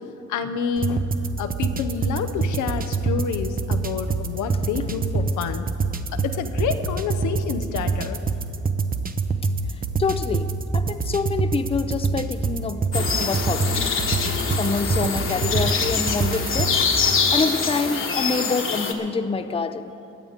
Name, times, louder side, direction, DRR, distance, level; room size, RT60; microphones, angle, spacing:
voice 1, 0.3-1.1 1.4-5.7 6.1-8.2, left 6 dB, 80° left, 8 dB, 0.9 m, -28 dB
sound 1, 0.8-16.8, right 4 dB, 30° right, 0.8 m, -26 dB
voice 2, 10.0-10.5 10.7-13.9 14.6-16.8 17.3-19.9, left 4 dB, 20° left, 10 dB, 0.6 m, -26 dB
sound 2, 12.9-18.9, left 5 dB, 45° left, 1.3 m, -24 dB
21.0 x 7.9 x 5.1 m, 2.6 s
cardioid pair, 90°, 30 cm